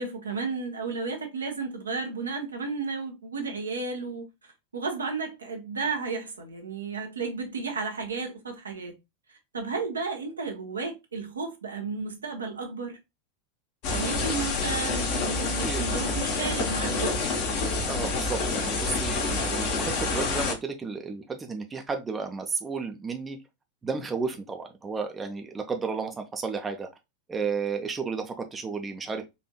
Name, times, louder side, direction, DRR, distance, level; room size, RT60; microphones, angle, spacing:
voice 1, 0.0-8.9 9.5-13.0 13.9-17.3, right 4 dB, 80° right, 0.9 m, -33 dB
sound 1, 13.8-20.5, left 3 dB, 50° left, 1.1 m, -28 dB
voice 2, 17.9-23.4 23.8-26.9 27.3-29.2, right 5 dB, 20° right, 0.6 m, -32 dB
4.3 x 2.5 x 2.3 m
figure-of-eight pair, 90°, 0 cm